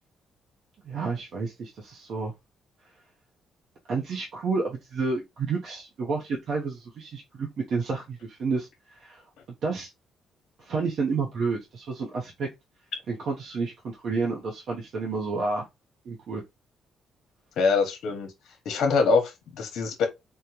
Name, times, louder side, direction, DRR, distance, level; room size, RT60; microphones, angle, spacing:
voice 1, 0.8-2.3 3.9-9.2 9.6-9.9 10.6-12.5 13.1-15.7 16.0-16.4, right 4 dB, 65° right, 0.6 m, -30 dB
voice 2, 17.6-18.3 18.6-20.1, left 4 dB, 75° left, 0.8 m, -24 dB
3.6 x 2.0 x 2.8 m
cardioid pair, 90°, 0 cm